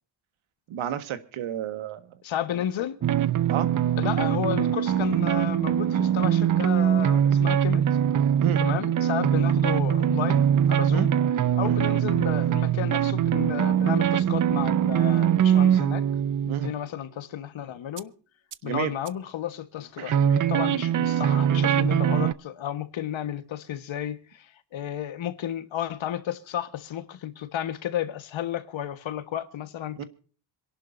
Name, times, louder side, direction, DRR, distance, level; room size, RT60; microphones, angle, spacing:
voice 1, 0.7-2.1 3.5-3.7 8.4-8.6 10.9-11.1 11.7-11.8 16.5-16.7 18.6-18.9 20.0-20.2 30.0-30.1, right 10 dB, 90° right, 1.7 m, -31 dB
voice 2, 2.2-3.0 4.0-7.8 8.6-11.1 11.5-16.0 16.4-18.1 18.6-30.0, left 10 dB, 75° left, 1.6 m, -32 dB
sound 1, 3.0-16.7 18.0-18.1 18.5-18.6 19.1-19.2 20.1-22.3, right 9 dB, 40° right, 0.6 m, -22 dB
26.5 x 11.5 x 2.7 m
cardioid pair, 100°, 47 cm